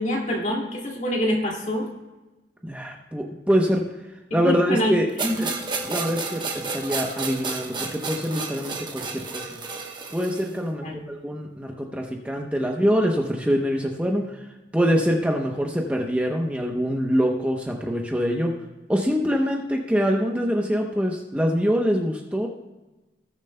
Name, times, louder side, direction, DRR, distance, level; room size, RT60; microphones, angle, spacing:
voice 1, 0.0-1.9 4.3-5.5 10.8-11.1, equal, 40° left, -1 dB, 2.3 m, -26 dB
voice 2, 2.6-3.8 4.3-5.1 5.4-5.5 5.9-9.6 10.1-14.5 14.7-18.5 18.9-22.5, equal, 5° right, 1 dB, 0.8 m, -24 dB
sound 1, 5.2-10.5, right 4 dB, 25° right, 1.1 m, -31 dB
19.0 x 7.2 x 2.2 m, 1.1 s
head